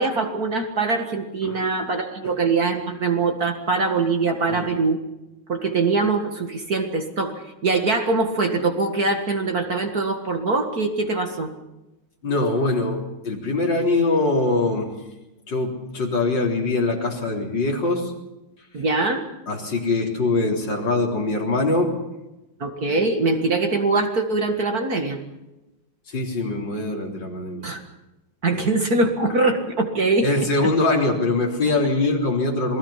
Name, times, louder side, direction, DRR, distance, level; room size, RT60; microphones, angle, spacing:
voice 1, 0.0-5.0 5.5-7.3 7.6-11.5 18.7-19.2 22.6-25.2 27.6-27.8 28.4-30.3, right 3 dB, 45° right, 5 dB, 2.3 m, -22 dB
voice 2, 12.2-14.9 15.5-18.1 19.5-21.9 26.1-27.7 28.5-28.7 30.2-32.8, left 2 dB, 60° left, 0 dB, 4.4 m, -23 dB
28.0 x 20.5 x 5.8 m, 0.98 s
omnidirectional pair, 2.3 m